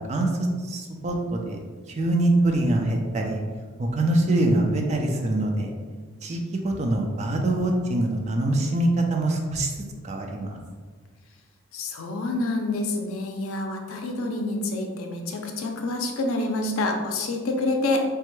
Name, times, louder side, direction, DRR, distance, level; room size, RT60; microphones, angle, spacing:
voice 1, 0.6-1.6 2.0-3.4 3.8-5.7 6.2-9.7 10.0-10.6, right 1 dB, 30° right, 2 dB, 0.3 m, -24 dB
voice 2, 11.7-18.0, left 2 dB, 80° left, 3 dB, 0.5 m, -27 dB
3.3 x 2.1 x 3.1 m, 1.5 s
head